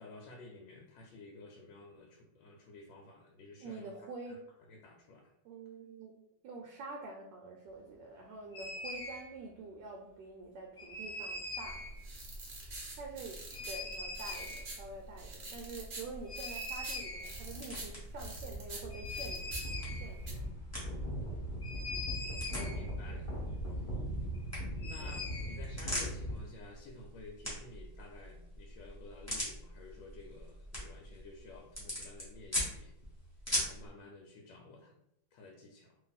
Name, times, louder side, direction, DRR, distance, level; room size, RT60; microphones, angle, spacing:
voice 1, 0.0-3.9 4.3-4.4 4.7-5.3 22.7-23.3 24.2-24.4 24.8-32.9 33.5-34.9 35.3-36.0, left 3 dB, 80° left, 0 dB, 1.3 m, -52 dB
voice 2, 3.6-4.5 5.4-11.8 12.7-19.5 20.0-20.5 22.6-23.5, right 3 dB, 75° right, 1 dB, 1.2 m, -47 dB
sound 1, 8.5-9.2 10.8-11.9 13.5-14.7 16.3-17.6 17.8-17.9 18.1-26.4, left 1 dB, 35° left, 0.8 m, -40 dB
sound 2, 11.6-20.3, right 2 dB, 50° right, 0.6 m, -46 dB
sound 3, 15.7-33.9, equal, 10° left, 1.0 m, -43 dB
2.9 x 2.6 x 3.9 m, 0.79 s
omnidirectional pair, 2.1 m